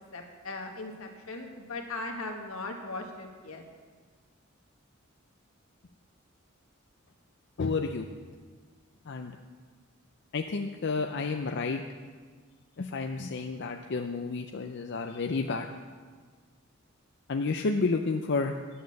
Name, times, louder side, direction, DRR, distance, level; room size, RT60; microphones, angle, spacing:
voice 1, 0.0-3.6, left 2 dB, 85° left, 2 dB, 1.7 m, -39 dB
voice 2, 7.6-8.1 9.1-9.3 10.3-11.8 12.8-15.7 17.3-18.5, left 4 dB, 55° left, 4 dB, 0.5 m, -30 dB
11.5 x 7.9 x 6.5 m, 1.5 s
head